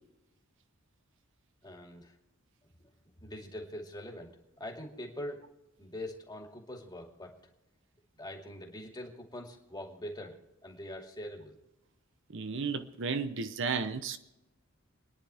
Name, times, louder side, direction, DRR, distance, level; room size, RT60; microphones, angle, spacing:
voice 1, 1.6-2.1 2.8-2.9 3.2-5.5 5.8-7.4 8.2-10.4 10.6-11.6, left 1 dB, 20° left, 2.4 m, -43 dB
voice 2, 12.3-14.2, right 5 dB, 60° right, 0.8 m, -33 dB
29.5 x 10.5 x 3.4 m
head